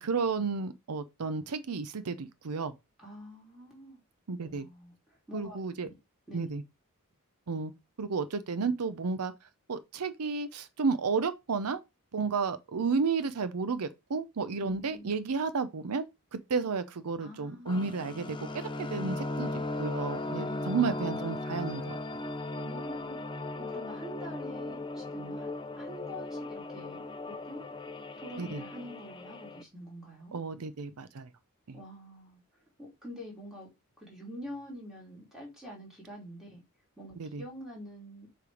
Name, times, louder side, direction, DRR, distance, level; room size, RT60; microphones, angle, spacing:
voice 1, 0.0-2.7 4.3-4.7 5.3-5.9 6.3-6.6 7.5-7.7 8.0-9.3 9.7-11.8 12.1-16.1 16.3-22.0 28.4-28.6 30.3-31.3 31.7-31.8 37.2-37.4, right 4 dB, 85° right, 0.6 m, -32 dB
voice 2, 3.0-4.0 4.4-6.0 6.3-6.6 14.6-15.1 17.2-18.2 20.3-20.9 22.5-27.7 28.2-30.4 31.7-32.4 32.8-33.7 34.0-36.6 37.0-38.3, equal, ahead, 3.0 m, -46 dB
sound 1, 17.7-29.6, left 2 dB, 20° left, 0.6 m, -37 dB
6.8 x 3.4 x 4.9 m
head